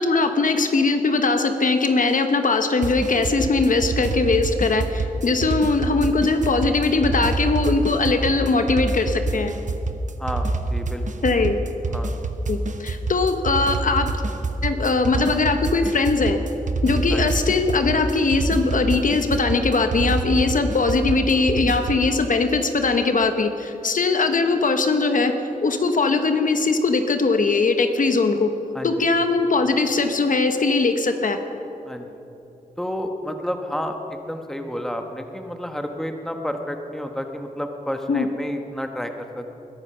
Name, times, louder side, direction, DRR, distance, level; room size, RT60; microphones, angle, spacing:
voice 1, 0.0-9.5 11.2-11.6 12.5-14.1 14.6-16.4 16.8-25.3 25.6-28.5 28.8-31.4 38.1-38.3, left 3 dB, 65° left, 7 dB, 1.1 m, -20 dB
sound 1, 2.8-22.1, right 3 dB, 60° right, 0.9 m, -26 dB
voice 2, 10.2-11.1 11.9-12.1 17.1-17.3 28.7-29.1 31.9-32.2 32.8-39.6, equal, 5° left, 5 dB, 1.2 m, -30 dB
21.0 x 12.0 x 5.6 m, 3.0 s
wide cardioid pair, 105°, 15 cm